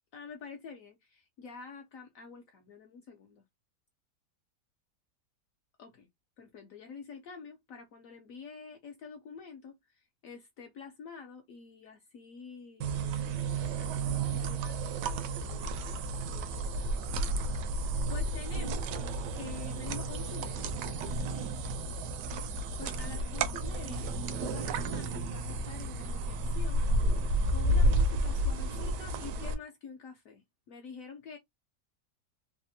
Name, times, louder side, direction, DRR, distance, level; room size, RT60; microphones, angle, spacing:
voice 1, 0.1-3.4 5.8-6.1 6.4-16.0 16.3-16.8 17.5-18.9 19.3-20.8 22.8-24.1 24.4-26.8 27.1-31.4, left 5 dB, 70° left, 0.8 m, -48 dB
sound 1, 12.8-29.6, right 1 dB, 80° right, 1.2 m, -31 dB
3.3 x 2.1 x 2.6 m
omnidirectional pair, 1.9 m